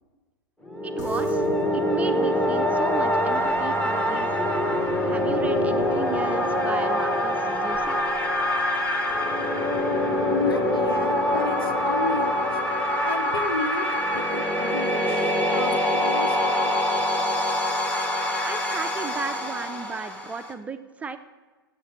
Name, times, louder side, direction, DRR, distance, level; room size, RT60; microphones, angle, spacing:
sound 1, 0.7-20.5, left 1 dB, 10° left, 1.0 m, -24 dB
voice 1, 0.8-1.5 1.7-4.5 5.1-8.2 18.4-21.2, right 5 dB, 10° right, 8 dB, 0.4 m, -35 dB
sound 2, 1.0-11.6, left 1 dB, 50° left, 0.9 m, -44 dB
voice 2, 10.3-12.6 13.0-13.9 14.1-16.8, left 4 dB, 75° left, 8 dB, 0.9 m, -32 dB
7.2 x 7.1 x 7.4 m, 1.3 s
figure-of-eight pair, 95°, 12 cm